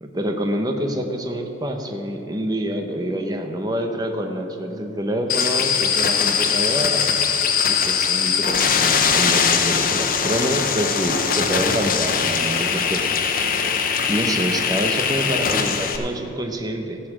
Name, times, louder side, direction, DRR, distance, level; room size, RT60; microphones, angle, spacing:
voice 1, 0.0-7.1 7.7-13.0 13.6-13.7 14.1-17.0, equal, 20° right, 4 dB, 0.9 m, -26 dB
sound 1, 5.3-16.0, left 6 dB, 50° left, 0.8 m, -21 dB
15.0 x 5.7 x 7.3 m, 3.0 s
head